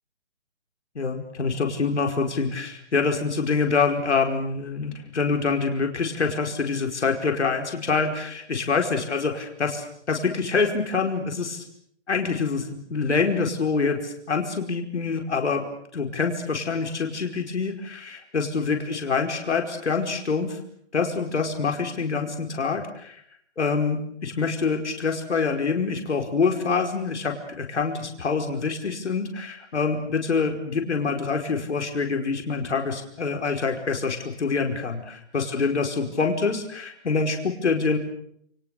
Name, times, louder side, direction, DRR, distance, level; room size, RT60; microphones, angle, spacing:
voice 1, 1.0-11.6 12.1-15.6 15.9-20.6 20.9-23.2 23.6-38.0, left 4 dB, 80° left, 3 dB, 5.1 m, -26 dB
29.5 x 27.0 x 6.8 m, 0.71 s
hypercardioid pair, 160°, 34 cm